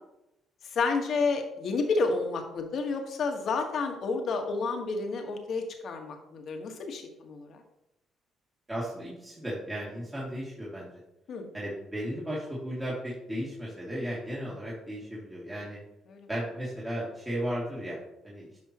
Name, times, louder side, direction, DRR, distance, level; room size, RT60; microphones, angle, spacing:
voice 1, 0.7-7.6 11.3-11.5 16.1-16.3, left 4 dB, 60° left, 4 dB, 1.5 m, -30 dB
voice 2, 8.7-10.9 11.5-15.8 16.3-18.0 18.2-18.4, equal, 15° right, -7 dB, 2.5 m, -35 dB
10.5 x 5.5 x 3.0 m, 0.88 s
cardioid pair, 85°, 0 cm